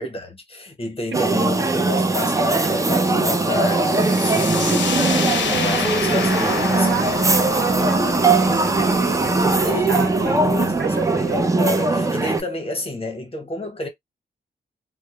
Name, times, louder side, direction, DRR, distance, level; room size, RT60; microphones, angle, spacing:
voice 1, 0.0-4.8 5.5-6.9 9.5-13.9, left 2 dB, 30° left, 1.0 m, -30 dB
sound 1, 1.1-12.4, right 3 dB, 15° right, 0.4 m, -20 dB
sound 2, 3.8-11.4, left 7 dB, 75° left, 0.5 m, -29 dB
voice 2, 4.6-5.5 6.7-10.3 10.6-11.2, right 6 dB, 80° right, 0.6 m, -30 dB
2.1 x 2.0 x 2.9 m
wide cardioid pair, 95°, 19 cm